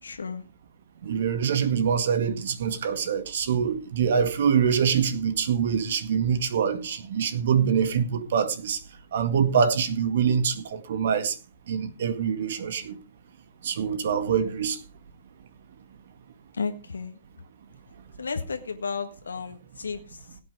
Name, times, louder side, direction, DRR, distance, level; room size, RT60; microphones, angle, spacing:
voice 1, 0.0-0.4 16.5-17.2 18.2-20.4, left 5 dB, 75° left, 7 dB, 1.6 m, -33 dB
voice 2, 1.0-8.8 9.1-11.3 11.7-13.0 13.6-14.8, right 7 dB, 60° right, 11 dB, 1.9 m, -24 dB
17.0 x 8.5 x 4.8 m, 0.32 s
figure-of-eight pair, 120°, 0 cm